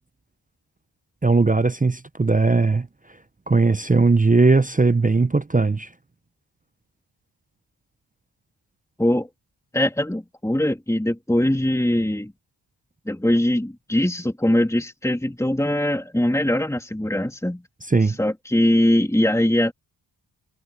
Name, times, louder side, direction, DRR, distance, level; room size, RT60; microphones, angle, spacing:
voice 1, 1.2-2.9 3.5-5.9 17.9-18.2, right 3 dB, 15° right, 0.5 m, -18 dB
voice 2, 9.7-12.3 13.1-17.6 18.1-19.7, left 1 dB, 5° left, 2.9 m, -21 dB
wide cardioid pair, 95°, 48 cm